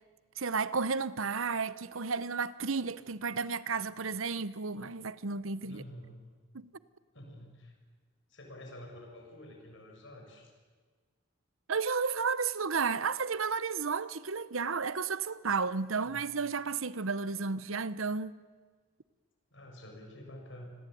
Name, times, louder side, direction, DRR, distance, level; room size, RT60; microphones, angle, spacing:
voice 1, 0.4-5.8 6.5-6.7 11.7-18.3, right 5 dB, 80° right, 0.9 m, -32 dB
voice 2, 5.6-6.2 7.1-7.7 8.3-10.5 16.0-16.2 19.5-20.8, left 1 dB, 60° left, 7.0 m, -49 dB
28.5 x 21.0 x 9.3 m
head